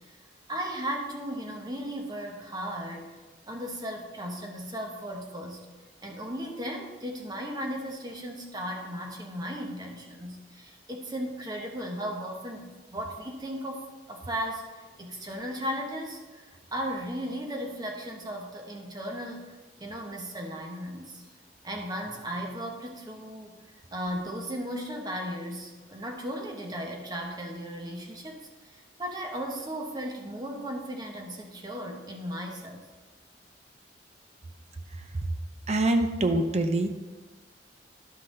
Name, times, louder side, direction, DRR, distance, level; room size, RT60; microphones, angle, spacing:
voice 1, 0.5-3.2 3.5-5.7 6.0-19.5 19.8-21.2 21.6-23.6 23.9-32.8, equal, 25° right, 1 dB, 1.1 m, -36 dB
voice 2, 35.7-36.9, right 2 dB, 40° right, 6 dB, 0.7 m, -24 dB
11.5 x 5.8 x 3.8 m, 1.3 s
head